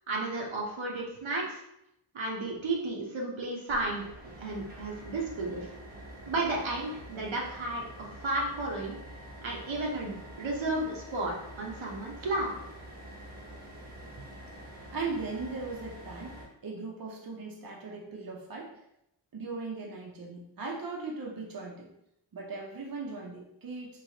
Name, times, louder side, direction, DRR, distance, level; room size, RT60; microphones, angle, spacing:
voice 1, 0.1-1.6 2.1-5.7 6.3-7.8 8.2-9.0 9.4-12.5 14.3-14.4, right 2 dB, 75° right, -2 dB, 0.9 m, -33 dB
sound 1, 3.7-16.5, right 1 dB, 20° right, 0.9 m, -47 dB
voice 2, 14.9-18.7 19.3-21.9 22.3-24.0, right 3 dB, 45° right, -2 dB, 0.7 m, -38 dB
3.2 x 2.9 x 2.8 m, 0.80 s
wide cardioid pair, 75°, 47 cm